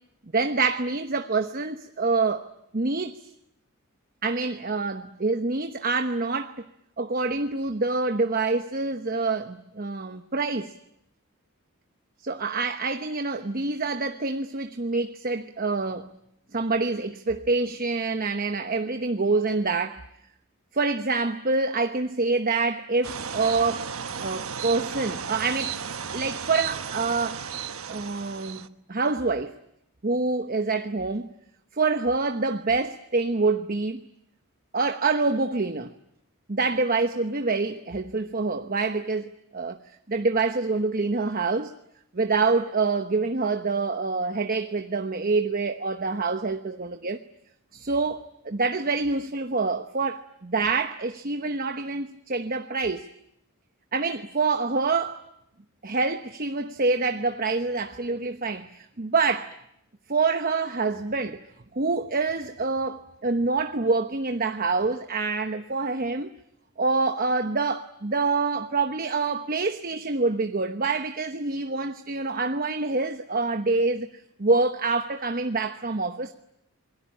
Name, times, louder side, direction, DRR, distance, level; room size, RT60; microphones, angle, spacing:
voice 1, 0.3-3.2 4.2-6.6 7.0-10.7 12.2-16.1 16.5-20.0 20.7-23.9 24.2-25.8 26.1-27.4 27.9-29.5 30.0-31.3 31.8-34.0 34.7-35.9 36.5-39.8 40.1-41.7 42.1-47.2 47.7-53.1 53.9-55.2 55.8-59.5 60.1-61.4 61.7-66.3 66.8-74.1 74.4-76.3, right 3 dB, 40° right, 1.0 m, -26 dB
sound 1, 23.0-28.7, right 7 dB, 70° right, 1.2 m, -34 dB
27.0 x 22.0 x 10.0 m
head